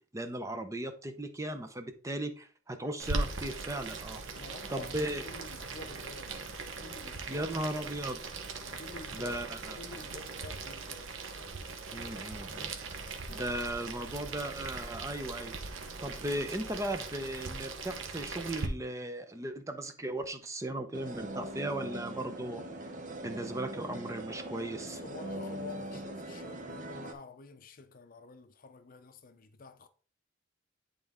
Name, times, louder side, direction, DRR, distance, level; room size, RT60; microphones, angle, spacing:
voice 1, 0.1-4.2 4.7-5.2 7.3-8.2 9.1-9.8 11.9-12.7 13.3-22.6 23.2-25.0, right 1 dB, 15° right, 0.6 m, -37 dB
Boiling, 3.0-18.7, right 3 dB, 90° right, 0.9 m, -40 dB
voice 2, 4.3-7.5 8.6-9.4 9.8-11.2 24.9-29.9, left 3 dB, 45° left, 0.6 m, -49 dB
sound 1, 20.9-27.1, right 1 dB, 40° right, 0.8 m, -41 dB
9.2 x 3.8 x 3.6 m
head